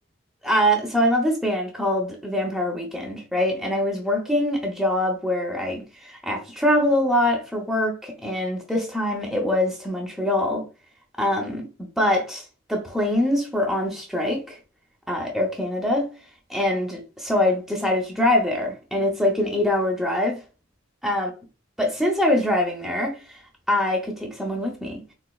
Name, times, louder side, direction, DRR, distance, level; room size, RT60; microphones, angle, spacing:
voice 1, 0.4-10.6 11.2-11.7 12.0-14.6 15.1-16.1 16.5-20.4 21.0-21.3 21.8-23.4 23.7-25.0, left 1 dB, ahead, 0.5 m, -24 dB
4.0 x 2.4 x 2.3 m
head